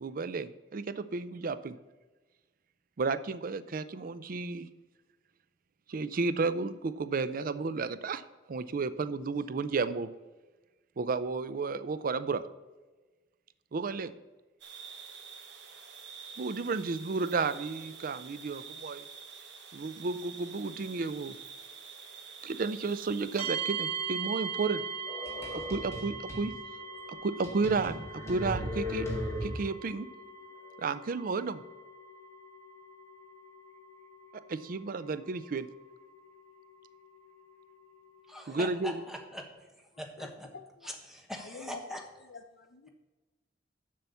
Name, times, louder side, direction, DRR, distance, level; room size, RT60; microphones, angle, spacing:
voice 1, 0.0-1.8 3.0-4.7 5.9-8.2 8.5-10.1 11.0-12.4 13.7-14.1 16.4-19.0 19.7-21.3 22.4-24.8 25.5-26.5 27.1-29.1 29.4-30.1 30.8-31.6 34.5-35.7 38.5-39.0, right 4 dB, 50° right, 14 dB, 0.5 m, -32 dB
sound 1, 14.6-23.5, right 6 dB, 70° right, 1.3 m, -47 dB
sound 2, 23.4-39.1, right 5 dB, 35° right, 1.3 m, -42 dB
sound 3, 25.1-26.5 27.0-27.1 27.4-29.9, left 1 dB, 15° left, 1.9 m, -37 dB
voice 2, 38.3-39.4 40.0-40.5 40.8-42.0, equal, ahead, 2 dB, 1.2 m, -41 dB
voice 3, 40.2-40.9 41.4-42.9, left 4 dB, 90° left, 8 dB, 0.7 m, -48 dB
7.6 x 5.7 x 6.9 m, 1.2 s
head